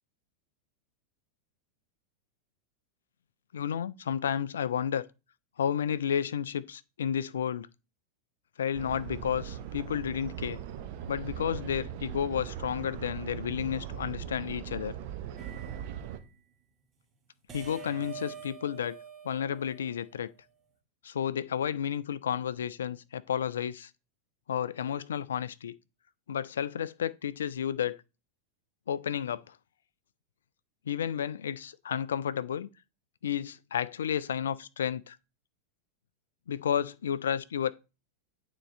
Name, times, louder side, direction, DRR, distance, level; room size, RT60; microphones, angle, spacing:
voice 1, 3.5-5.1 5.6-7.7 8.6-10.6 11.1-14.9 17.5-19.0 19.2-20.3 21.0-23.9 24.5-25.7 26.3-28.0 28.9-29.6 30.9-32.7 33.2-35.2 36.5-37.7, left 8 dB, 65° left, 0.3 m, -32 dB
sound 1, 8.7-16.2, right 9 dB, 50° right, 0.7 m, -40 dB
sound 2, 15.4-16.3 17.5-20.3, right 7 dB, 25° right, 1.1 m, -46 dB
8.9 x 4.0 x 3.1 m
figure-of-eight pair, 90°, 0 cm